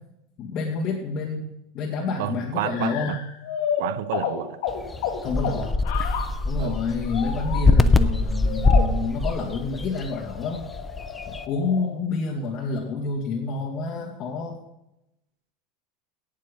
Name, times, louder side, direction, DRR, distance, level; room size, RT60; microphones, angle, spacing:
voice 1, 0.4-1.5 1.7-3.2 5.2-5.7 6.4-10.7 11.3-14.6, left 4 dB, 40° left, 2.4 m, -28 dB
voice 2, 2.2-3.2 3.8-4.6 6.6-6.8, right 15 dB, 75° right, 0.5 m, -30 dB
sound 1, 2.6-6.5 7.1-7.7 8.0-8.1 8.5-9.1 9.8-11.9, left 7 dB, 70° left, 1.7 m, -31 dB
sound 2, 4.7-11.5, left 3 dB, 10° left, 0.6 m, -23 dB
17.0 x 7.4 x 5.4 m
supercardioid pair, 140°, 0 cm